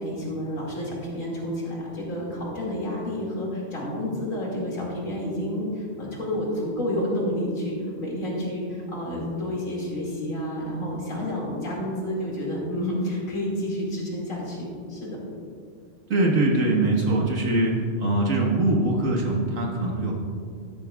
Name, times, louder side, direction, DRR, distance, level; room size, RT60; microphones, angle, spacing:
voice 1, 0.0-15.2, left 1 dB, 85° left, -4 dB, 2.7 m, -30 dB
voice 2, 16.1-17.7 18.0-20.1, right 2 dB, 80° right, -1 dB, 1.9 m, -22 dB
12.0 x 11.0 x 2.4 m, 2.3 s
omnidirectional pair, 1.3 m